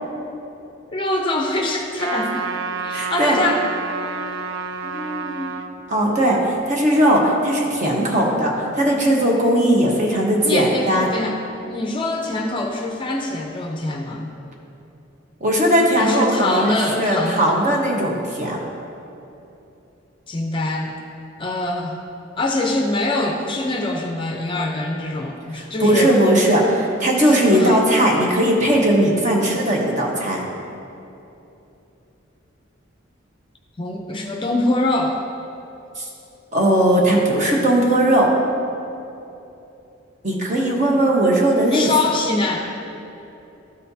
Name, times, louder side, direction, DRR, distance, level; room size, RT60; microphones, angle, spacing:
voice 1, 0.9-2.5 2.8-3.6 4.8-5.6 10.4-11.4 11.7-14.3 15.9-17.6 20.3-20.9 21.4-22.0 22.4-26.1 27.2-27.8 33.8-35.2 41.7-42.7, left 2 dB, 25° left, 1 dB, 0.5 m, -24 dB
Trumpet, 2.0-5.7, right 5 dB, 70° right, 0.5 m, -29 dB
voice 2, 2.9-3.4 5.9-6.4 6.7-11.1 15.4-18.6 25.5-30.4 36.0-36.1 36.5-38.3 40.2-41.9, right 1 dB, 40° right, -2 dB, 1.1 m, -18 dB
13.0 x 4.3 x 2.7 m, 2.8 s
head